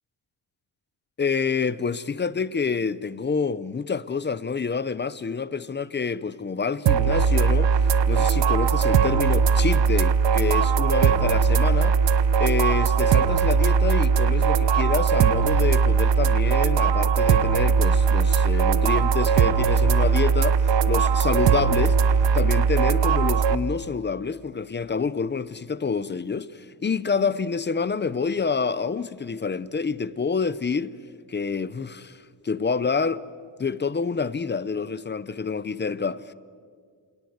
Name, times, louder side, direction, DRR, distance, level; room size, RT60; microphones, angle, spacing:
voice 1, 1.2-12.0 12.4-20.6 20.8-30.9 31.3-33.2 33.6-36.3, left 5 dB, 25° left, 0.7 m, -27 dB
sound 1, 6.9-23.6, right 6 dB, 85° right, 1.1 m, -20 dB
28.5 x 26.0 x 8.0 m
wide cardioid pair, 160°, 42 cm